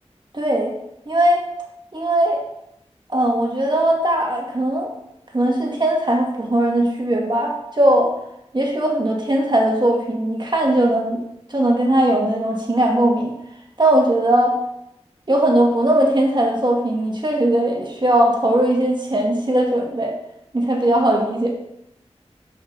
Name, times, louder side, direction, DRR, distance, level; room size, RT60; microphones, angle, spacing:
voice 1, 0.3-0.7 1.1-1.4 1.9-2.4 3.1-4.9 5.3-8.1 8.5-11.2 11.5-13.3 13.8-14.6 15.3-20.1 20.5-21.5, right 1 dB, 40° right, -1 dB, 1.9 m, -19 dB
7.8 x 6.9 x 4.0 m, 0.80 s
wide cardioid pair, 45°, 11 cm